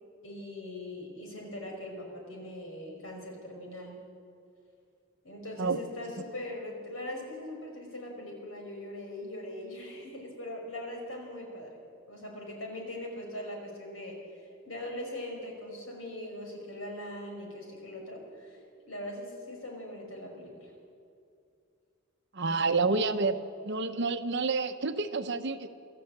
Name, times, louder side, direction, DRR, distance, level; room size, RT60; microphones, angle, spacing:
voice 1, 0.2-4.0 5.2-11.8 12.1-14.4 14.7-20.7, left 1 dB, 70° left, 1 dB, 5.6 m, -41 dB
voice 2, 22.3-23.4 23.6-25.7, right 4 dB, 55° right, 8 dB, 1.0 m, -28 dB
25.0 x 14.0 x 8.2 m, 2.4 s
head